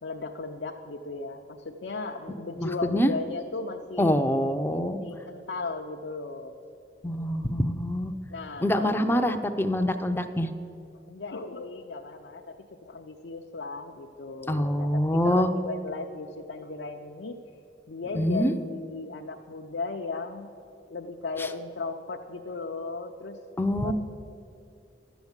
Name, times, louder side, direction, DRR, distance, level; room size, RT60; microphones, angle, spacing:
voice 1, 0.0-4.1 5.0-6.5 8.3-9.3 11.1-14.9 15.2-17.4 17.9-20.5 20.9-23.4 23.8-23.9, left 3 dB, 75° left, 2 dB, 0.6 m, -36 dB
voice 2, 2.6-3.1 4.0-5.0 7.0-8.1 8.6-10.5 14.5-15.5 18.1-18.5 21.4-21.5 23.6-23.9, equal, 10° left, 7 dB, 0.5 m, -25 dB
11.5 x 7.1 x 8.1 m, 2.5 s
head